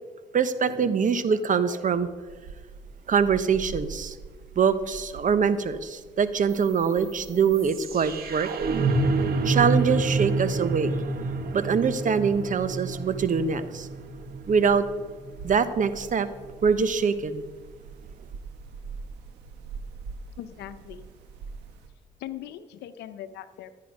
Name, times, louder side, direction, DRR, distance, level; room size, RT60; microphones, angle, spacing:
voice 1, 0.3-2.1 3.1-4.2 4.6-8.5 9.4-10.9 11.5-13.9 14.5-14.9 15.4-16.3 16.6-17.4, right 6 dB, 50° right, 13 dB, 1.0 m, -24 dB
sound 1, 2.3-21.9, right 4 dB, 90° right, 1.4 m, -45 dB
sound 2, 6.5-16.5, right 3 dB, 65° right, 1.7 m, -29 dB
voice 2, 20.4-21.1 22.2-23.7, left 11 dB, 80° left, 11 dB, 0.8 m, -40 dB
14.0 x 9.9 x 5.4 m, 1.4 s
supercardioid pair, 60°, 17 cm